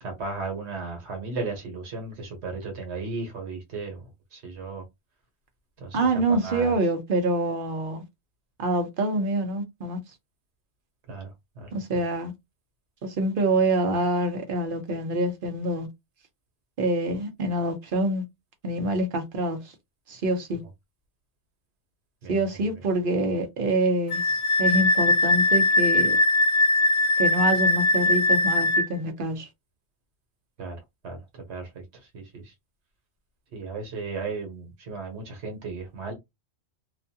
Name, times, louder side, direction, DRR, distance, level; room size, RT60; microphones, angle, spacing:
voice 1, 0.0-4.0 4.3-4.8 5.8-6.0 6.3-6.7 11.1-12.0 22.2-22.4 30.6-30.8 31.0-31.8 32.1-32.5 33.5-36.1, right 3 dB, 90° right, 1.2 m, -35 dB
voice 2, 5.9-8.0 8.6-10.0 11.7-12.3 13.0-15.9 16.8-18.2 18.6-19.6 20.1-20.6 22.3-26.2 27.2-29.5, right 1 dB, 55° right, 0.9 m, -26 dB
Wind instrument woodwind instrument, 24.1-28.9, left 2 dB, 80° left, 0.9 m, -21 dB
2.5 x 2.3 x 2.7 m
omnidirectional pair, 1.1 m